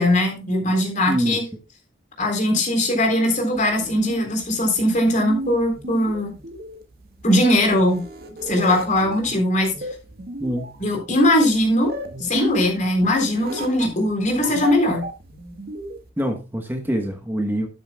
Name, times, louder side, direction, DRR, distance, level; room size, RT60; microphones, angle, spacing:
voice 1, 0.0-1.4 2.2-6.3 7.2-8.0 8.5-9.7 10.8-11.9 12.2-15.0, left 1 dB, 40° left, 3 dB, 3.5 m, -20 dB
voice 2, 1.1-1.4 10.4-10.7 16.2-17.7, equal, 10° right, 4 dB, 1.2 m, -25 dB
sound 1, 3.5-16.1, right 1 dB, 55° right, 1.9 m, -34 dB
12.0 x 9.1 x 2.3 m, 0.30 s
head